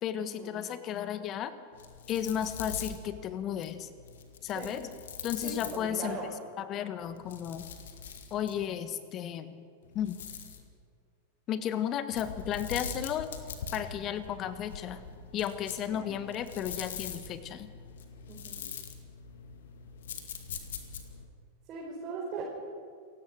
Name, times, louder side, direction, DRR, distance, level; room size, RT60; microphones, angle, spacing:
voice 1, 0.0-1.5 2.1-3.9 4.4-4.9 5.2-6.2 6.6-7.6 8.3-9.6 9.9-10.2 11.5-13.3 13.7-15.0 15.3-17.7, left 10 dB, 35° left, 11 dB, 1.6 m, -34 dB
sound 1, 1.7-6.2 7.0-8.7 9.8-10.7 12.1-21.3, left 6 dB, 60° left, 2.2 m, -43 dB
voice 2, 5.4-6.3 14.0-14.1 15.9-16.1 18.3-18.7 21.7-22.4, right 4 dB, 30° right, -4 dB, 5.1 m, -40 dB
28.5 x 16.5 x 6.5 m, 2.1 s
figure-of-eight pair, 90°, 0 cm